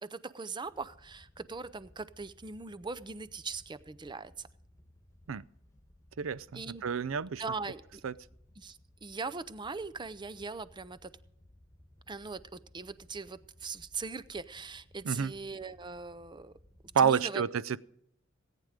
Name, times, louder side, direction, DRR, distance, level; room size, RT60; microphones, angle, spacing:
voice 1, 0.0-4.5 6.5-6.8 7.4-8.0 8.6-11.1 12.1-16.5 17.0-17.4, right 4 dB, 25° right, 14 dB, 0.5 m, -40 dB
Wind / Boat Water vehicle, 0.6-17.2, left 1 dB, 15° left, 1.7 m, -61 dB
voice 2, 6.2-7.4 8.0-8.1 15.0-15.3 16.9-17.8, right 7 dB, 80° right, 19 dB, 0.5 m, -29 dB
18.0 x 9.1 x 5.0 m, 0.75 s
head